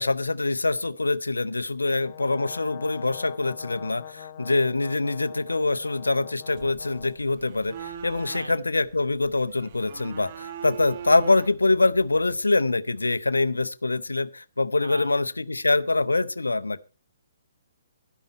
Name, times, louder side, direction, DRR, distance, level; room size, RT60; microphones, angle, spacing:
voice 1, 0.0-16.8, left 3 dB, 80° left, 0.6 m, -24 dB
Brass instrument, 2.0-7.2, left 10 dB, 45° left, 0.7 m, -43 dB
sound 1, 6.5-12.5, right 8 dB, 40° right, 1.0 m, -42 dB
voice 2, 14.8-15.2, right 2 dB, 85° right, 2.6 m, -38 dB
12.0 x 10.5 x 4.2 m
figure-of-eight pair, 130°, 0 cm